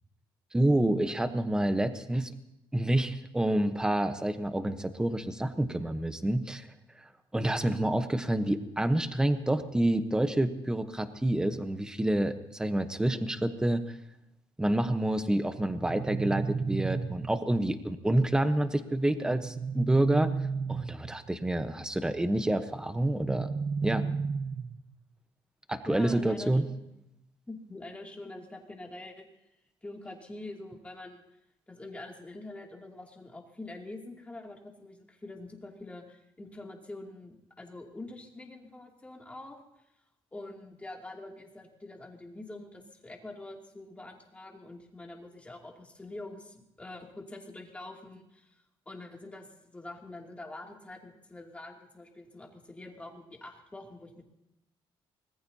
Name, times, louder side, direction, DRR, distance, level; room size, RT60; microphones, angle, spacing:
voice 1, 0.5-2.3 2.7-6.7 7.3-13.8 14.6-20.3 20.7-23.5 23.8-24.1 25.7-26.6, right 1 dB, 5° right, 9 dB, 1.0 m, -28 dB
sound 1, 15.6-17.6 19.3-21.3 23.0-25.0, right 5 dB, 35° right, 1.0 m, -33 dB
voice 2, 25.8-26.8 27.5-29.5 29.8-31.2 31.7-39.6 40.3-54.2, left 2 dB, 15° left, 0 dB, 2.7 m, -45 dB
25.0 x 19.5 x 2.9 m, 0.86 s
cardioid pair, 135°, 10 cm